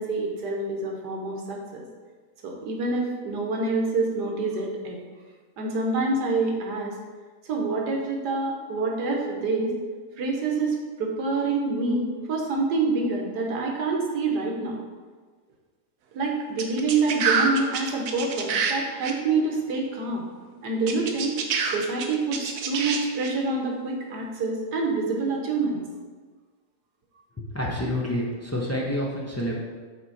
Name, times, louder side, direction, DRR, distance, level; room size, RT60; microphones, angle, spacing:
voice 1, 0.0-1.8 2.4-5.0 5.6-7.0 7.5-9.7 10.2-14.8 16.1-20.2 20.6-21.4 21.7-25.8, right 3 dB, 85° right, 0 dB, 1.6 m, -27 dB
sound 1, 16.6-18.7 19.0-19.1 20.9-23.3, right 5 dB, 65° right, 1.0 m, -26 dB
voice 2, 27.4-29.5, left 1 dB, 20° left, -4 dB, 0.3 m, -28 dB
6.0 x 4.5 x 4.1 m, 1.5 s
omnidirectional pair, 1.7 m